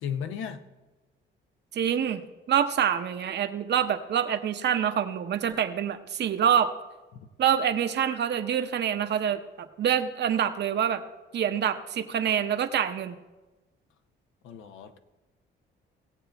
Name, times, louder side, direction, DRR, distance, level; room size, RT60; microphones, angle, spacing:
voice 1, 0.0-0.6 7.1-7.3 14.4-15.0, left 8 dB, 85° left, 8 dB, 0.8 m, -35 dB
voice 2, 1.7-2.2 2.5-6.7 7.4-9.4 9.8-11.0 11.3-13.2, right 9 dB, 60° right, 8 dB, 0.9 m, -26 dB
17.5 x 7.8 x 3.4 m, 1.1 s
cardioid pair, 90°, 20 cm